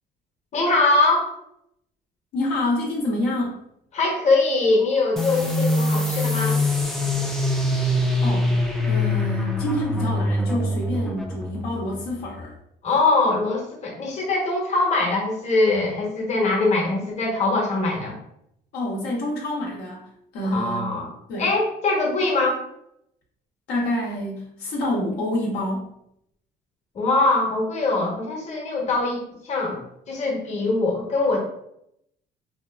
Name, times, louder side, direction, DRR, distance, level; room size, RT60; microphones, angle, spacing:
voice 1, 0.5-1.4 3.9-6.6 12.8-18.1 20.4-21.1 21.4-22.6 26.9-29.8 30.1-31.4, left 3 dB, 45° left, -1 dB, 0.8 m, -22 dB
voice 2, 2.3-3.6 8.2-8.6 8.9-12.6 18.7-20.0 20.3-20.9 21.3-21.5 23.7-25.9, left 1 dB, 75° left, -3 dB, 0.7 m, -27 dB
sound 1, 5.2-12.4, left 1 dB, ahead, 0.3 m, -24 dB
2.8 x 2.3 x 2.2 m, 0.75 s
cardioid pair, 110°, 17 cm